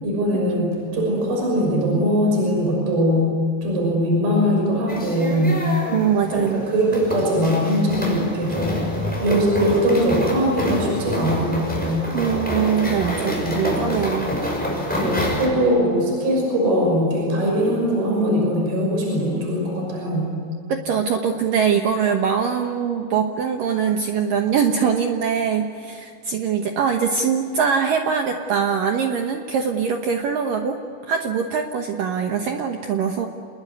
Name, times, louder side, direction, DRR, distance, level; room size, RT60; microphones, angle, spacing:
voice 1, 0.0-3.3 3.6-5.6 6.3-8.8 9.2-12.1 13.2-13.7 15.0-20.3, equal, 50° right, -1 dB, 7.9 m, -21 dB
sound 1, 4.9-15.5, equal, ahead, 5.5 m, -27 dB
voice 2, 5.9-6.7 12.1-14.3 20.7-33.3, right 7 dB, 80° right, 4 dB, 2.0 m, -22 dB
28.5 x 21.0 x 9.6 m, 2.4 s
omnidirectional pair, 5.7 m